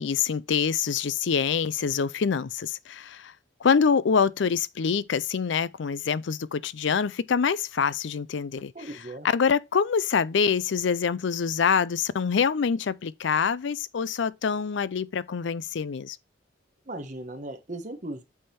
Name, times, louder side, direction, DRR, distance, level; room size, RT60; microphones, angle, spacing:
voice 1, 0.0-3.3 3.6-8.7 9.3-16.2, left 6 dB, 70° left, 0.4 m, -25 dB
voice 2, 8.7-9.3 16.9-18.2, right 1 dB, 40° right, 1.2 m, -37 dB
8.6 x 3.6 x 4.2 m
head